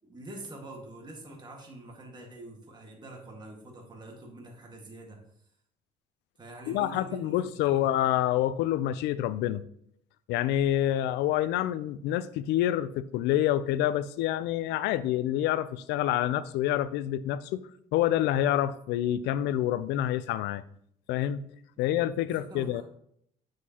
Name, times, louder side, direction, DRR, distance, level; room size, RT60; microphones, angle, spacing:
voice 1, 0.0-5.5 6.4-7.9 21.8-21.9 22.3-22.8, right 1 dB, 25° right, 0 dB, 1.7 m, -45 dB
voice 2, 6.7-9.6 10.3-20.6 21.1-21.4 21.8-22.8, left 12 dB, 90° left, 16 dB, 0.4 m, -27 dB
7.4 x 6.4 x 2.9 m, 0.69 s
cardioid pair, 110°, 17 cm